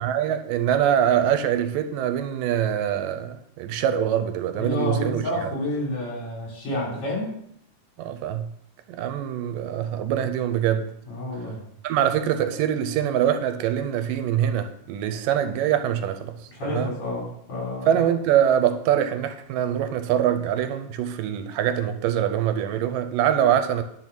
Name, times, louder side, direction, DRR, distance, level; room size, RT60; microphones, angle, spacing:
voice 1, 0.0-5.5 8.0-8.5 8.9-10.9 11.8-16.3 16.6-17.0 17.9-23.8, right 10 dB, 85° right, 9 dB, 2.3 m, -24 dB
voice 2, 4.6-7.3 11.1-11.6 16.5-17.9, left 1 dB, 55° left, -4 dB, 4.4 m, -29 dB
9.8 x 4.4 x 5.9 m, 0.73 s
omnidirectional pair, 3.8 m